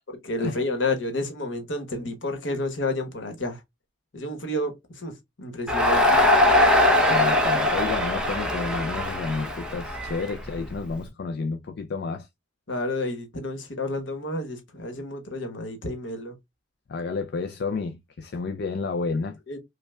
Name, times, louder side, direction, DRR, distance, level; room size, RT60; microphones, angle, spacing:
voice 1, 0.1-3.6 4.1-6.2 12.7-16.4 19.5-19.6, left 2 dB, 75° left, 1.1 m, -30 dB
Crowd, 5.7-10.9, left 1 dB, 5° right, 0.8 m, -21 dB
voice 2, 7.1-12.3 16.9-19.4, left 4 dB, 60° left, 0.4 m, -30 dB
5.3 x 2.3 x 2.2 m
head